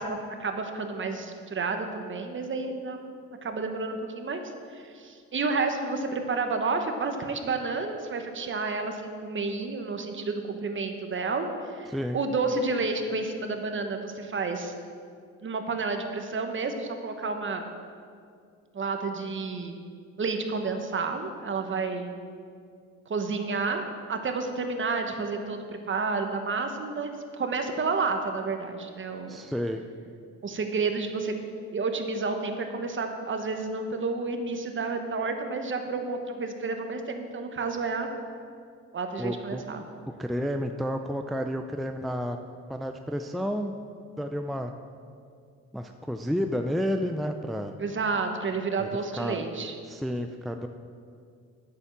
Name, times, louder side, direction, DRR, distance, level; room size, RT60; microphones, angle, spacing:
voice 1, 0.0-3.0 3.4-4.4 4.7-14.7 15.4-17.7 18.7-19.8 20.2-22.1 23.1-23.8 24.1-29.4 30.4-31.3 31.7-38.1 38.9-39.9 47.8-49.7, right 4 dB, 40° right, 5 dB, 1.3 m, -30 dB
voice 2, 11.9-12.2 29.3-29.8 39.2-39.6 40.2-42.4 42.7-43.7 44.2-44.7 45.7-47.7 48.8-49.4 49.9-50.7, equal, ahead, 5 dB, 0.5 m, -31 dB
8.8 x 7.2 x 7.3 m, 2.2 s
cardioid pair, 90°, 30 cm